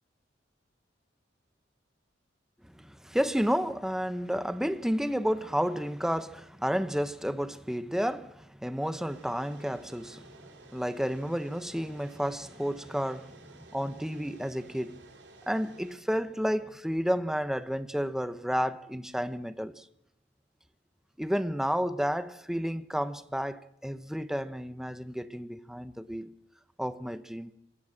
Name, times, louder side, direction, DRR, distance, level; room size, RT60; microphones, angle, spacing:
voice 1, 2.6-10.4 10.7-15.0 15.5-19.8 21.2-26.3 26.8-27.5, equal, 5° right, 0.9 m, -31 dB
sound 1, 9.1-16.0, right 2 dB, 80° right, 4.2 m, -54 dB
26.0 x 16.5 x 7.5 m
head